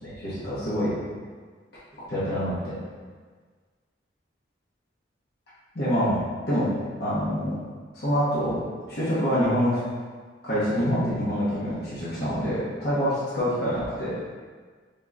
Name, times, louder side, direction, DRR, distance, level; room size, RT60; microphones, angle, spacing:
voice 1, 0.0-0.9 2.1-2.8 5.7-6.7 7.0-7.6 7.9-9.8 10.4-14.1, equal, 55° left, -11 dB, 1.0 m, -26 dB
3.8 x 2.9 x 2.4 m, 1.5 s
head